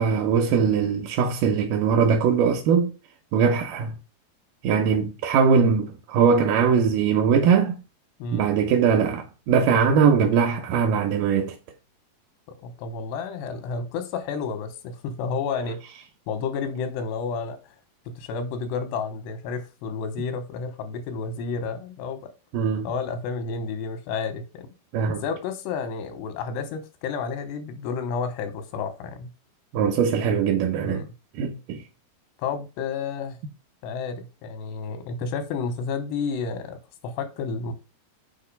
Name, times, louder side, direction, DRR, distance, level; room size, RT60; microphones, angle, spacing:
voice 1, 0.0-2.9 3.3-4.0 4.6-7.8 8.3-11.5 22.5-22.9 24.9-25.2 29.7-31.0 31.4-31.8, right 6 dB, 75° right, 2.0 m, -21 dB
voice 2, 12.6-15.8 16.3-17.6 18.1-22.2 22.8-24.7 25.2-29.3 30.8-31.1 32.4-33.4 33.8-37.7, left 5 dB, 90° left, 3.2 m, -31 dB
6.4 x 4.6 x 5.2 m
omnidirectional pair, 4.7 m